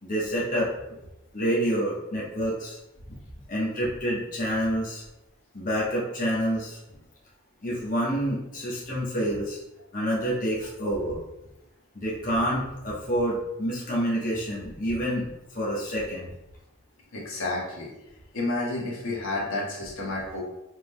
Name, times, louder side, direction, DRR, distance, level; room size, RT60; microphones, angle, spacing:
voice 1, 0.0-0.7 1.3-2.8 3.5-5.0 5.5-6.8 7.6-9.6 9.9-11.2 11.9-16.3, equal, 40° left, -6 dB, 1.1 m, -28 dB
voice 2, 17.1-17.9 18.3-20.4, left 2 dB, 85° left, -4 dB, 1.3 m, -30 dB
5.0 x 3.7 x 2.2 m, 0.93 s
head